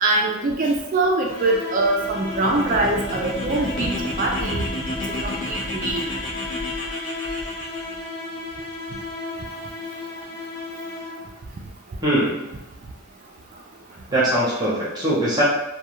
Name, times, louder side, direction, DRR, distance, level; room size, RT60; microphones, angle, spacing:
voice 1, 0.0-4.6 5.1-6.1, right 2 dB, 35° right, 1 dB, 0.3 m, -23 dB
sound 1, 1.2-11.5, left 2 dB, 15° left, 0.8 m, -34 dB
sound 2, 1.9-7.9, left 1 dB, 65° left, 0.7 m, -31 dB
voice 2, 12.0-12.5 14.1-15.4, right 1 dB, 20° right, -8 dB, 0.7 m, -21 dB
2.3 x 2.2 x 3.0 m, 0.92 s
head